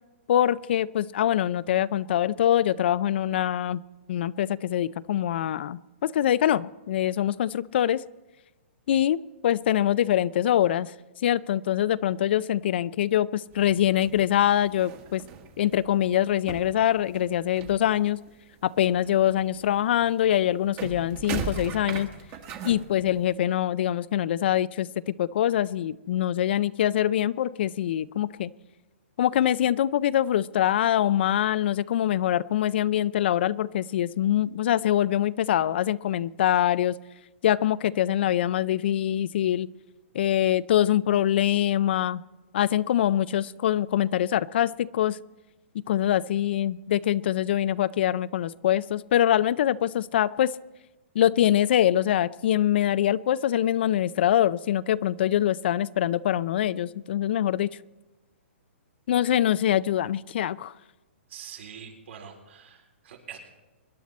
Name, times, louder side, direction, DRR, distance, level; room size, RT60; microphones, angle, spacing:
voice 1, 0.3-3.8 4.1-8.0 8.9-10.9 11.2-15.2 15.6-18.2 18.6-22.1 22.6-28.5 29.2-37.0 37.4-39.7 40.1-42.2 42.5-45.2 45.7-50.5 51.1-57.7 59.1-60.7, left 11 dB, 55° left, 18 dB, 0.4 m, -24 dB
sound 1, 13.5-16.1 16.4-18.3 18.6-23.4, right 6 dB, 25° right, 1.4 m, -39 dB
voice 2, 61.3-63.4, right 8 dB, 65° right, 1 dB, 4.1 m, -44 dB
25.0 x 11.0 x 4.3 m, 1.1 s
hypercardioid pair, 155°, 7 cm